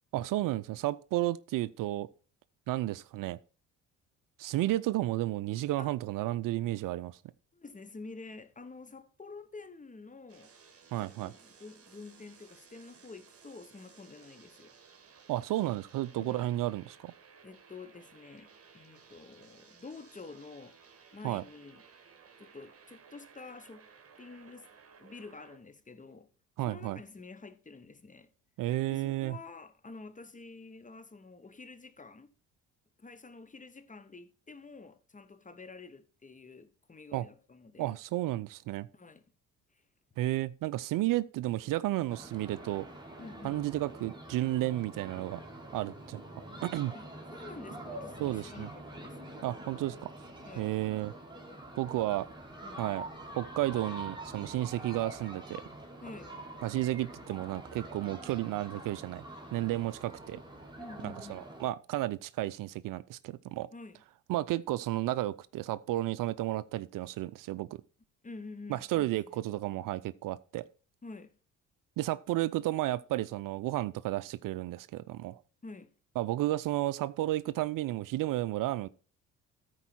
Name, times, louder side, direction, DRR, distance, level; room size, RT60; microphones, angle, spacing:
voice 1, 0.1-2.1 2.7-3.4 4.4-7.2 10.9-11.3 15.3-17.1 21.2-21.4 26.6-27.0 28.6-29.4 37.1-37.3 37.8-38.9 40.2-42.9 43.4-45.4 45.7-46.9 48.2-48.7 49.4-50.1 50.6-51.1 51.8-52.3 52.8-53.0 53.3-55.6 56.6-59.2 59.5-60.4 61.0-63.7 64.3-67.7 68.7-70.6 72.0-75.4 76.2-78.9, right 15 dB, 60° right, 0.5 m, -32 dB
voice 2, 7.5-10.5 11.0-14.7 16.2-16.5 17.4-20.8 21.1-21.8 22.4-23.9 24.2-24.7 25.0-26.3 26.6-28.3 28.9-32.3 33.0-37.9 38.9-39.2 43.2-43.6 46.9-47.0 47.3-49.3 50.4-50.7 52.6-52.9 56.0-56.3 60.8-61.5 63.7-64.0 68.2-69.2 71.0-71.3 75.6-75.9, left 3 dB, 20° left, 1.0 m, -48 dB
sound 1, 10.3-25.6, right 6 dB, 35° right, 1.9 m, -58 dB
sound 2, 42.1-61.7, right 1 dB, 10° right, 2.5 m, -46 dB
13.5 x 4.6 x 4.4 m
hypercardioid pair, 65°, 38 cm